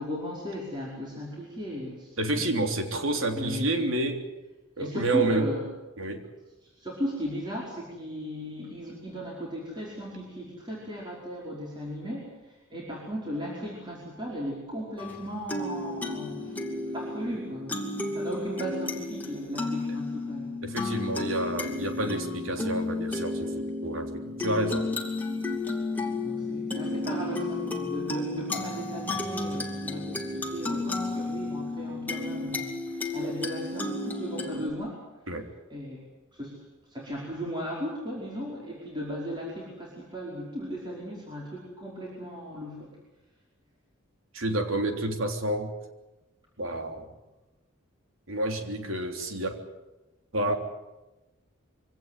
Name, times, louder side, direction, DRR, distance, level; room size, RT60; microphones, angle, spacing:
voice 1, 0.0-2.7 3.4-3.8 4.8-5.7 6.8-16.6 16.9-20.5 26.2-35.0 35.7-36.0 36.3-36.6 36.9-42.9, equal, 20° right, -4 dB, 5.2 m, -36 dB
voice 2, 2.2-4.2 4.8-5.5 6.0-6.2 20.6-24.9 35.3-35.5 44.3-45.7 46.6-47.1 48.3-49.6 50.3-50.5, right 2 dB, 80° right, 5 dB, 3.5 m, -29 dB
sound 1, 15.0-34.7, left 2 dB, 10° left, 2.7 m, -32 dB
24.0 x 17.5 x 9.4 m, 1.0 s
head